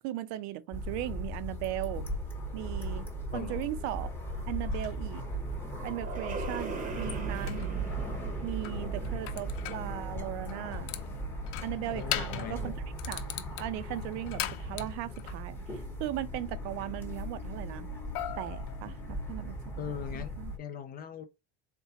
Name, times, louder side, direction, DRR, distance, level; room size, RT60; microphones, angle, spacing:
voice 1, 0.0-2.1 2.5-4.1 4.5-5.2 5.8-7.8 8.4-10.9 11.6-12.8 13.1-17.9 18.4-19.6 20.1-20.5, right 14 dB, 60° right, 0.6 m, -38 dB
sound 1, 0.7-20.6, equal, 5° left, 0.8 m, -38 dB
voice 2, 3.3-3.7 11.9-12.7 19.8-21.3, left 8 dB, 30° left, 0.4 m, -40 dB
sound 2, 4.7-5.0 6.6-6.7 7.1-7.7 8.6-9.9 10.5-11.1 11.5-12.5 13.0-15.4 18.1-19.4, left 13 dB, 70° left, 0.7 m, -39 dB
sound 3, 4.9-11.1, right 4 dB, 25° right, 0.8 m, -39 dB
4.4 x 3.3 x 2.7 m
cardioid pair, 165°, 31 cm